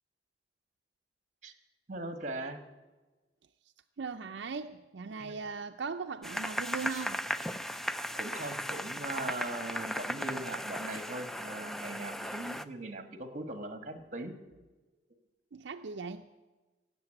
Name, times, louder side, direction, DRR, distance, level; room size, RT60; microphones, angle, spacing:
voice 1, 1.9-2.6 5.2-5.3 8.1-14.3, right 2 dB, 45° right, 1.4 m, -40 dB
voice 2, 4.0-7.3 15.5-16.3, right 5 dB, 75° right, 0.5 m, -39 dB
sound 1, 6.2-12.6, equal, ahead, 0.4 m, -36 dB
16.5 x 7.4 x 8.9 m
head